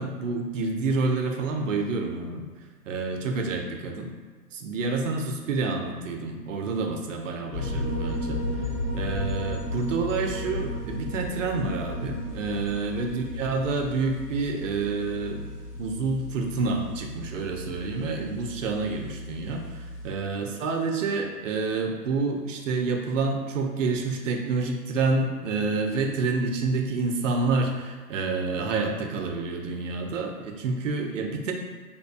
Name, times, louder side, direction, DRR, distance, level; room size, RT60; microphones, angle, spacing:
voice 1, 0.0-2.5 2.9-4.1 4.5-8.4 8.9-15.5 15.8-19.6 20.0-31.5, right 3 dB, 55° right, 3 dB, 0.5 m, -28 dB
sound 1, 7.5-20.1, left 1 dB, 70° left, 1.2 m, -34 dB
2.7 x 2.2 x 2.2 m, 1.4 s
figure-of-eight pair, 110°, 47 cm